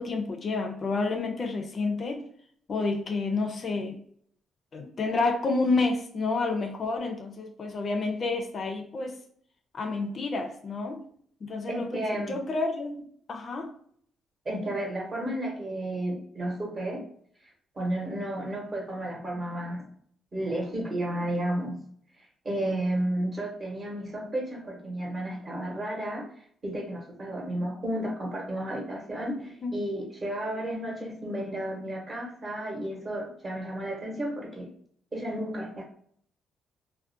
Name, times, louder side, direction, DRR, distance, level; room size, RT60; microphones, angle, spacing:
voice 1, 0.0-2.2 2.7-4.0 4.7-9.2 9.7-11.0 11.4-13.0 13.3-13.7 29.6-29.7, left 3 dB, 45° left, 0.4 m, -29 dB
voice 2, 11.7-12.4 14.4-17.0 17.7-19.9 20.3-21.8 22.4-26.3 26.6-34.7 35.1-35.8, right 1 dB, 30° right, 0.8 m, -32 dB
2.4 x 2.1 x 2.6 m
cardioid pair, 90°, 0 cm